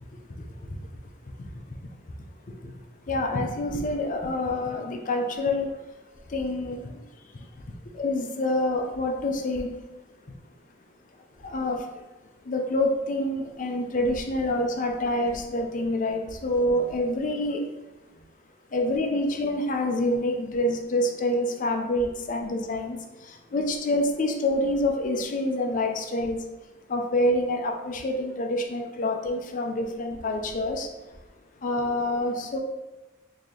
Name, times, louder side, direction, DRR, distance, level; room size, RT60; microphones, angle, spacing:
voice 1, 0.4-0.8 1.3-1.5 2.6-2.7 3.1-5.7 6.3-7.0 7.3-7.5 7.9-9.7 11.4-12.0 12.4-17.6 18.7-26.4 26.9-30.9 31.6-32.6, left 1 dB, 45° left, 2 dB, 0.5 m, -27 dB
3.8 x 2.8 x 3.2 m, 1.1 s
head